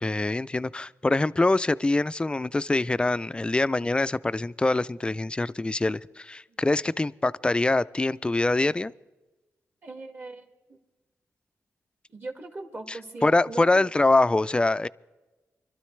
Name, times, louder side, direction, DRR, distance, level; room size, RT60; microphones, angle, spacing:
voice 1, 0.0-8.9 12.9-13.0 13.2-14.9, left 2 dB, 20° left, 16 dB, 0.3 m, -24 dB
voice 2, 9.8-10.8 12.1-13.9, right 2 dB, 40° right, 4 dB, 1.9 m, -39 dB
25.0 x 12.5 x 3.2 m, 1.1 s
cardioid pair, 90°, 6 cm